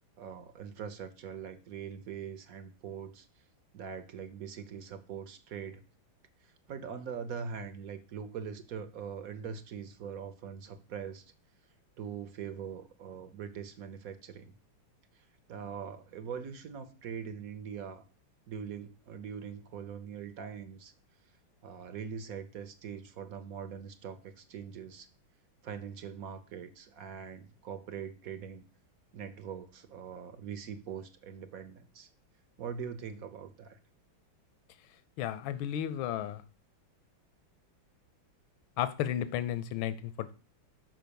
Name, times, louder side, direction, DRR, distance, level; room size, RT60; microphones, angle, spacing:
voice 1, 0.2-3.3 3.7-5.8 6.4-11.2 12.0-14.5 15.1-18.0 18.5-20.9 21.6-25.1 25.6-28.6 29.1-32.1 32.6-33.8, right 7 dB, 60° right, 1.0 m, -42 dB
voice 2, 35.2-36.4 38.8-40.3, left 11 dB, 85° left, 1.4 m, -33 dB
6.4 x 5.0 x 6.8 m
omnidirectional pair, 2.2 m